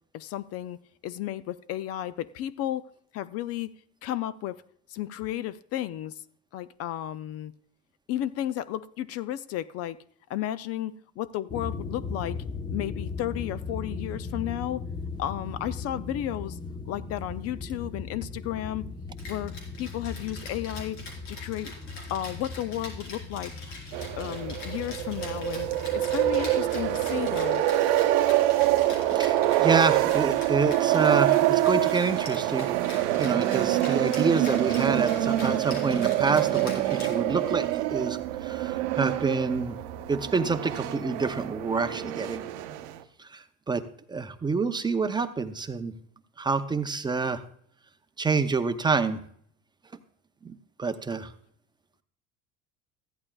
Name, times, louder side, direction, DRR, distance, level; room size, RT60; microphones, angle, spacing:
voice 1, 0.1-0.8 1.0-3.7 4.0-4.6 4.9-6.2 6.5-7.5 8.1-10.0 10.3-12.4 12.7-14.8 15.2-16.6 16.8-18.8 19.3-19.5 19.8-21.0 21.3-21.7 22.1-23.5 24.2-27.6, left 12 dB, 50° left, 0.4 m, -33 dB
sound 1, 11.5-27.4, left 4 dB, 15° left, 0.9 m, -38 dB
Rattle (instrument), 19.2-37.7, left 2 dB, 90° left, 3.9 m, -44 dB
sound 2, 23.9-43.0, right 14 dB, 85° right, 0.8 m, -26 dB
voice 2, 29.1-32.7 33.2-39.8 40.1-42.4 43.2-43.8 44.1-45.9 46.4-47.4 48.2-49.2 50.4-50.5 50.8-51.3, right 4 dB, 15° right, 0.5 m, -27 dB
14.5 x 11.0 x 2.3 m
cardioid pair, 125°, 30 cm